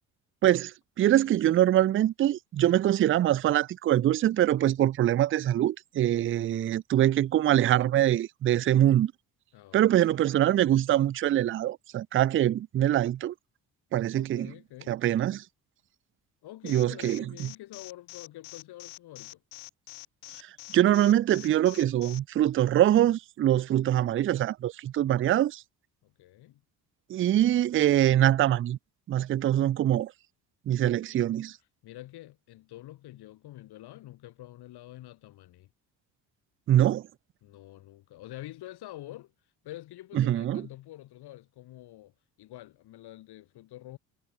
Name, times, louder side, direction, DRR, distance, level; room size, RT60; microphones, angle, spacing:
voice 1, 0.4-9.1 9.7-13.3 13.9-14.5 14.9-15.4 16.7-17.2 20.7-25.6 27.1-28.8 29.1-30.1 30.7-31.5 36.7-37.0 40.2-40.7, right 12 dB, 30° right, 0.4 m, -24 dB
voice 2, 9.5-10.2 14.1-15.0 16.4-19.4 26.0-26.6 31.8-35.7 37.4-44.0, left 15 dB, 70° left, 2.3 m, -47 dB
Alarm, 16.7-22.2, left 39 dB, 85° left, 1.1 m, -45 dB
supercardioid pair, 70°, 41 cm